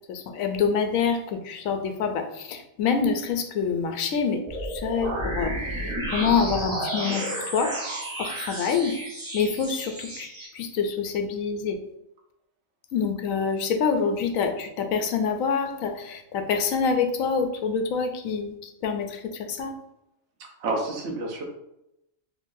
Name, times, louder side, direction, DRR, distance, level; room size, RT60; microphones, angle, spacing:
voice 1, 0.1-7.7 8.2-9.0 9.3-10.3 10.5-11.8 12.9-19.8, left 6 dB, 90° left, 6 dB, 1.0 m, -26 dB
sound 1, 4.5-10.5, right 1 dB, 25° right, 0.8 m, -32 dB
voice 2, 20.4-21.4, right 2 dB, 65° right, 0 dB, 1.0 m, -30 dB
3.8 x 3.1 x 2.6 m, 0.85 s
omnidirectional pair, 1.4 m